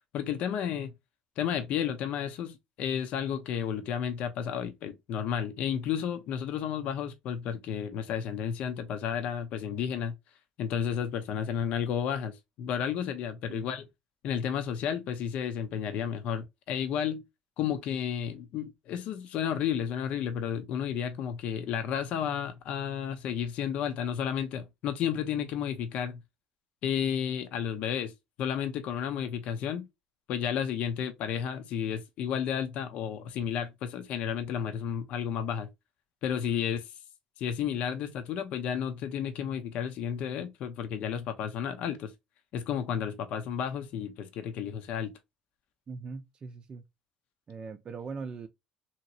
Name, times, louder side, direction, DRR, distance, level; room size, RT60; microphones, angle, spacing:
voice 1, 0.1-0.9 1.4-10.2 10.6-13.9 14.2-17.2 17.6-26.2 26.8-28.1 28.4-29.8 30.3-35.7 36.2-36.9 37.4-42.1 42.5-45.1, left 8 dB, 60° left, 0.6 m, -32 dB
voice 2, 45.9-46.8 47.5-48.5, right 4 dB, 35° right, 0.5 m, -40 dB
2.9 x 2.8 x 2.7 m
hypercardioid pair, 75°, 2 cm